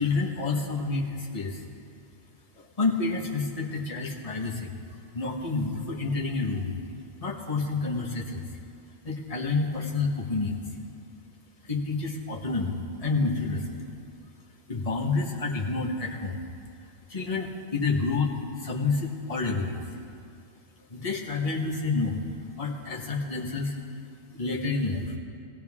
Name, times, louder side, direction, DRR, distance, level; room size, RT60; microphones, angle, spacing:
voice 1, 0.0-1.6 2.5-6.7 7.2-8.5 9.0-10.6 11.6-13.8 14.7-16.4 17.1-19.8 20.9-22.2 22.6-23.8 24.4-25.1, left 3 dB, 30° left, -3 dB, 1.6 m, -29 dB
18.0 x 17.0 x 3.7 m, 2.4 s
omnidirectional pair, 1.2 m